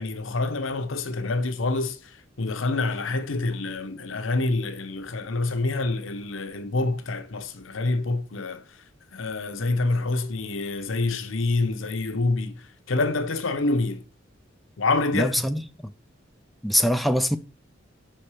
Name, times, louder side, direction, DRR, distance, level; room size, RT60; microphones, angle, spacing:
voice 1, 0.0-2.1 2.4-8.6 9.1-12.6 12.9-14.0 14.8-15.3, left 3 dB, 75° left, 0.8 m, -27 dB
voice 2, 15.1-15.9 16.6-17.4, equal, ahead, 0.3 m, -23 dB
5.4 x 4.4 x 4.8 m
head